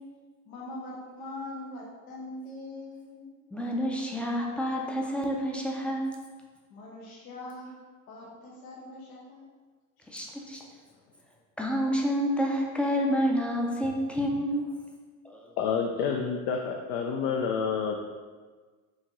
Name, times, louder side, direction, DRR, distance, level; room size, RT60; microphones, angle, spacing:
voice 1, 0.5-3.3 6.7-7.8 8.1-9.4, left 2 dB, 85° left, -3 dB, 1.0 m, -42 dB
voice 2, 3.5-6.1 10.1-10.6 11.6-14.8 15.2-15.5, equal, 5° left, -1 dB, 0.4 m, -28 dB
voice 3, 15.6-18.0, left 6 dB, 60° left, 2 dB, 0.5 m, -28 dB
4.8 x 2.8 x 3.0 m, 1.4 s
supercardioid pair, 105°, 41 cm